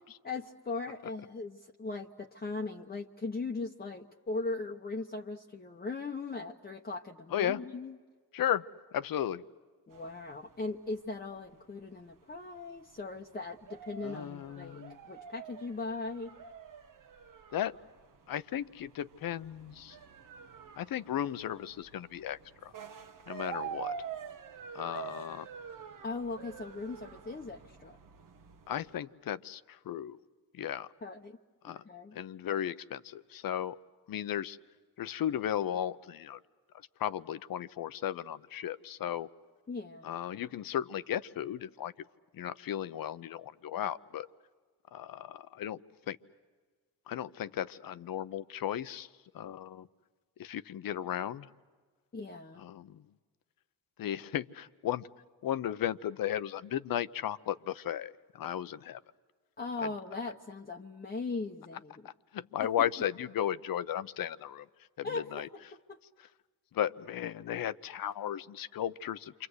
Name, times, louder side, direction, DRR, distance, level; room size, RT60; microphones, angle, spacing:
voice 1, 0.2-8.0 9.9-16.3 26.0-28.0 31.0-31.4 31.7-32.2 39.7-40.1 52.1-52.6 59.6-62.1 62.6-62.9 65.0-66.0, left 3 dB, 25° left, 1 dB, 1.0 m, -39 dB
voice 2, 7.3-7.6 8.3-8.7 8.9-9.4 14.0-15.0 17.5-17.7 18.3-20.0 20.8-22.7 23.3-23.9 24.7-25.5 28.7-30.2 30.5-30.9 31.6-31.8 32.1-33.8 34.1-34.6 35.0-36.4 37.0-39.3 40.0-41.9 42.3-44.3 44.9-45.8 46.1-46.2 47.1-49.1 49.3-49.9 50.4-51.5 52.6-53.0 54.0-55.1 55.4-59.0 62.3-64.7 65.0-65.5 66.7-69.5, left 10 dB, 65° left, 14 dB, 0.8 m, -35 dB
sound 1, 9.9-29.0, right 7 dB, 60° right, 1.2 m, -47 dB
28.5 x 25.0 x 8.0 m, 1.4 s
cardioid pair, 90°, 37 cm